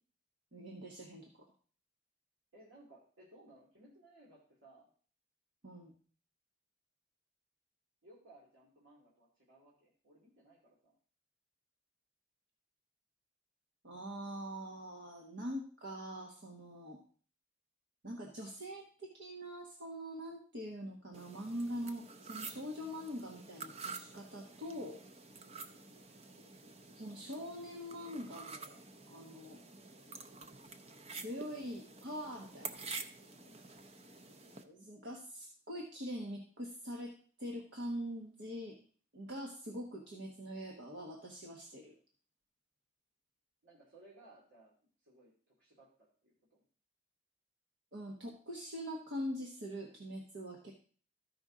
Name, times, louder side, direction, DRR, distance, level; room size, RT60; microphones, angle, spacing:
voice 1, 0.5-1.5 5.6-5.9 13.8-17.0 18.0-25.0 27.0-28.8 29.1-29.6 31.2-32.8 34.6-38.8 39.1-41.9 47.9-50.7, equal, 70° right, 0 dB, 1.3 m, -43 dB
voice 2, 2.5-4.9 8.0-11.0 33.4-33.6 43.6-44.7 45.0-46.6, right 2 dB, 90° right, -6 dB, 2.4 m, -61 dB
sound 1, 21.1-34.6, right 4 dB, 30° right, 0.6 m, -49 dB
13.5 x 5.3 x 3.7 m, 0.43 s
head